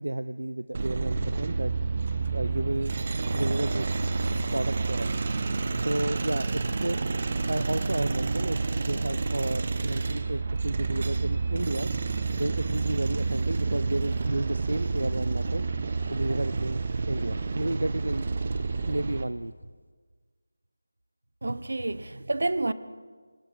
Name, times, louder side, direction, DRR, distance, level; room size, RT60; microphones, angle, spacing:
voice 1, 0.0-1.7 2.2-2.9 3.3-4.0 4.5-5.2 5.8-7.0 7.5-11.9 12.4-15.6 16.1-16.8 17.1-18.3 18.9-19.5, right 1 dB, 85° right, 0.6 m, -32 dB
sound 1, 0.7-19.2, right 3 dB, 45° right, 1.4 m, -29 dB
voice 2, 21.4-22.7, right 2 dB, 70° right, 1.2 m, -29 dB
26.0 x 20.0 x 5.2 m
figure-of-eight pair, 165°, 0 cm